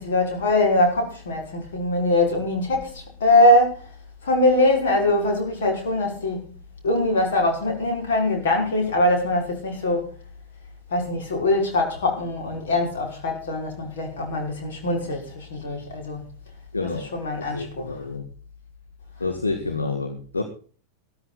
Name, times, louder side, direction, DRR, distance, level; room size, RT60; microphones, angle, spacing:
voice 1, 0.0-3.8 4.2-6.4 6.8-10.1 10.9-16.2 16.8-18.0, left 1 dB, 60° left, 5.7 m, -22 dB
voice 2, 16.7-17.1 17.5-18.2 19.2-20.4, left 3 dB, 80° left, 1.8 m, -28 dB
15.0 x 13.5 x 4.2 m
figure-of-eight pair, 90°, 0 cm